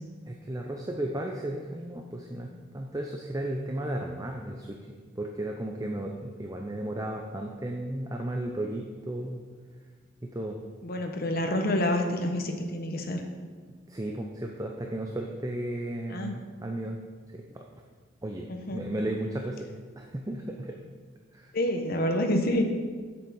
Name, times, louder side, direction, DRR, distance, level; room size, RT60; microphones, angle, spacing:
voice 1, 0.3-4.8 5.2-9.4 10.2-10.6 13.9-17.0 17.3-17.6 18.2-19.7 20.0-20.8 21.3-21.5, right 1 dB, 15° right, 2 dB, 0.6 m, -34 dB
voice 2, 10.8-13.2 16.1-16.3 18.5-18.8 21.5-22.6, left 1 dB, 50° left, 4 dB, 1.0 m, -28 dB
7.8 x 7.1 x 5.5 m, 1.5 s
head